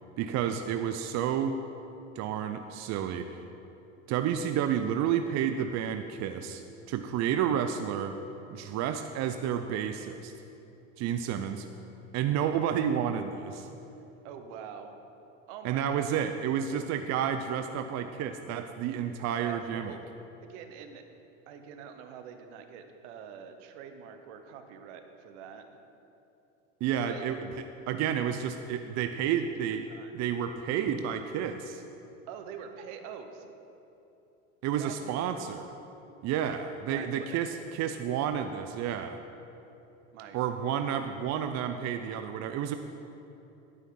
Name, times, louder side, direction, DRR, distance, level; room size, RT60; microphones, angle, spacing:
voice 1, 0.2-1.6 2.2-3.4 4.1-6.6 6.9-8.2 8.5-10.3 11.0-11.7 12.1-13.7 15.6-19.9 26.8-27.4 27.9-29.9 30.1-31.8 34.6-35.8 36.2-39.2 40.3-42.8, right 9 dB, 45° right, 7 dB, 0.6 m, -30 dB
voice 2, 14.2-15.0 15.5-16.2 19.4-20.0 20.4-21.0 21.5-25.6 27.0-27.2 29.9-30.2 32.3-33.5 34.8-35.1 36.9-37.4 40.1-40.4, right 7 dB, 70° right, 7 dB, 1.1 m, -45 dB
11.0 x 9.3 x 3.9 m, 2.9 s
hypercardioid pair, 90°, 38 cm